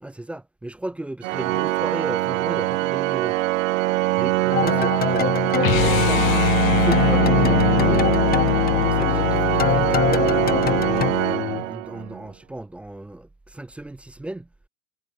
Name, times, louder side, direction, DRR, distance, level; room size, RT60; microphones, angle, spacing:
voice 1, 0.0-3.4 4.1-6.3 6.7-8.1 8.8-10.3 10.8-14.5, right 1 dB, 5° right, 0.4 m, -34 dB
Organ, 1.2-12.2, right 17 dB, 65° right, 0.6 m, -23 dB
sound 1, 4.5-6.7 6.9-11.1, left 9 dB, 20° left, 1.2 m, -26 dB
sound 2, 5.6-11.6, left 15 dB, 65° left, 1.0 m, -23 dB
hypercardioid pair, 95°, 42 cm